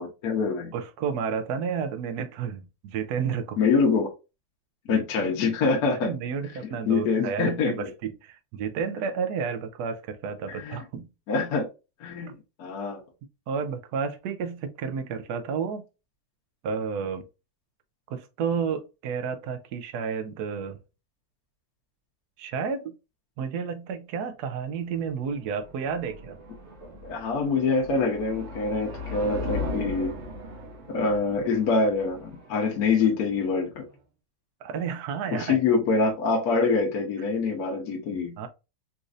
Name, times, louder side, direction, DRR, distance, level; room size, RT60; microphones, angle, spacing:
voice 1, 0.0-0.7 3.6-4.1 4.9-6.1 6.8-7.9 10.5-10.8 11.3-11.7 12.0-12.3 12.6-13.0 27.0-30.2 30.9-33.8 35.3-38.4, left 4 dB, 65° left, 1.3 m, -25 dB
voice 2, 0.7-3.6 4.9-5.3 5.9-11.1 12.3-12.4 13.5-15.8 16.6-17.3 18.1-20.8 22.4-22.9 23.4-26.4 34.6-35.6 38.1-38.5, right 6 dB, 70° right, 1.1 m, -31 dB
sound 1, 25.0-33.9, left 1 dB, 50° right, 1.1 m, -38 dB
4.1 x 2.5 x 2.5 m
omnidirectional pair, 1.9 m